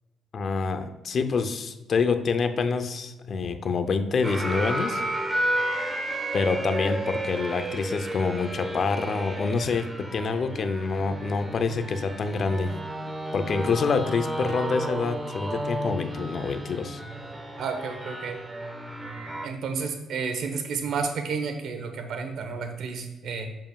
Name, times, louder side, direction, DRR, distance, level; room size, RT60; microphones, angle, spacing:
voice 1, 0.3-5.0 6.3-9.9 10.1-12.7 13.3-17.0, left 4 dB, 55° left, 9 dB, 0.6 m, -26 dB
sound 1, 4.2-19.5, right 1 dB, 15° right, 0.9 m, -32 dB
voice 2, 17.6-18.4 19.4-23.5, right 5 dB, 70° right, 6 dB, 1.1 m, -31 dB
7.5 x 7.2 x 2.4 m, 1.1 s
cardioid pair, 90°, 0 cm